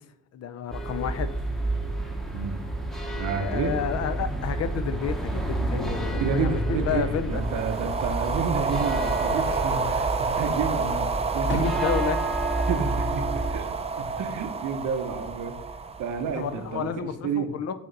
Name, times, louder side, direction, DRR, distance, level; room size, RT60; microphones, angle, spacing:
voice 1, 0.3-1.4 3.4-7.4 9.3-9.4 11.5-12.2 16.3-17.7, left 8 dB, 55° left, 0.5 m, -30 dB
sound 1, 0.7-13.5, right 1 dB, ahead, 0.8 m, -30 dB
voice 2, 3.2-3.7 5.6-5.9 6.2-11.8 12.7-15.6 16.0-17.5, right 5 dB, 80° right, 0.8 m, -30 dB
sound 2, 7.3-16.8, right 4 dB, 20° right, 0.5 m, -29 dB
Fireworks, 10.8-14.0 14.3-14.8 16.4-17.2, left 1 dB, 40° left, 1.8 m, -43 dB
6.1 x 2.9 x 5.2 m
cardioid pair, 90°, 30 cm